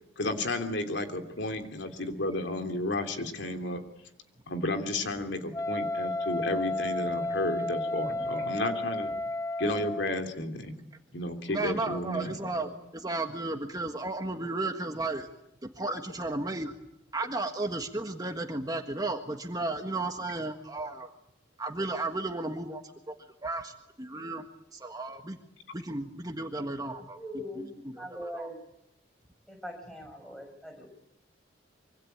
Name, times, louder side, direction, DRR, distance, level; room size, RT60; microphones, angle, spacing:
voice 1, 0.2-3.8 4.5-9.1 9.6-10.7 11.1-12.4 15.9-16.0, left 1 dB, 70° left, 6 dB, 3.1 m, -32 dB
Wind instrument woodwind instrument, 5.5-10.2, left 2 dB, 20° left, 1.0 m, -32 dB
voice 2, 11.5-15.3 15.6-16.8 17.1-21.1 21.6-24.4 24.7-25.4 25.7-27.2 27.5-28.5, right 2 dB, 20° right, 5 dB, 1.5 m, -34 dB
voice 3, 27.1-27.7 28.0-28.5 29.5-30.9, equal, ahead, 4 dB, 6.1 m, -41 dB
25.0 x 25.0 x 9.3 m, 0.80 s
head